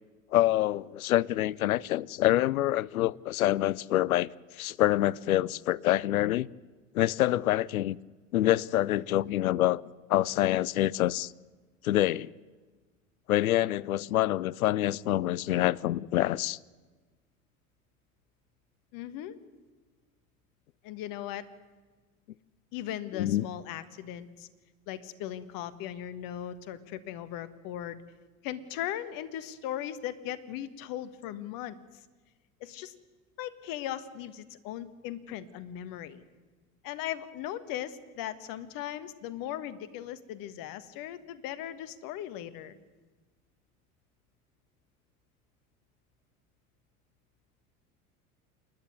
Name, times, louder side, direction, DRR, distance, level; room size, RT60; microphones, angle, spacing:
voice 1, 0.3-4.3 4.6-6.5 6.9-8.0 8.3-9.8 10.1-11.3 11.8-12.3 13.3-16.6 23.1-23.4, left 14 dB, 75° left, 0.6 m, -26 dB
voice 2, 18.9-19.4 20.8-21.4 22.7-24.5 24.9-28.0 28.4-31.8 32.6-32.9 33.4-36.2 36.8-42.8, left 11 dB, 50° left, 1.5 m, -38 dB
27.5 x 11.0 x 9.8 m
figure-of-eight pair, 75°, 43 cm